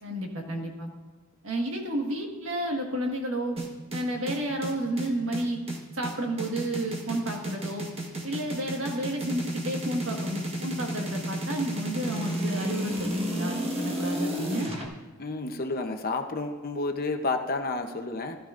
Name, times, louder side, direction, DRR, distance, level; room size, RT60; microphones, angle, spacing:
voice 1, 0.0-0.9 1.4-3.6 3.9-5.6 5.9-7.9 8.2-14.7, right 1 dB, 60° right, 1 dB, 1.6 m, -31 dB
sound 1, 3.6-14.9, right 1 dB, 25° right, 1.3 m, -32 dB
voice 2, 15.2-18.4, left 3 dB, 40° left, 5 dB, 0.8 m, -30 dB
15.0 x 12.5 x 2.5 m, 1.2 s
head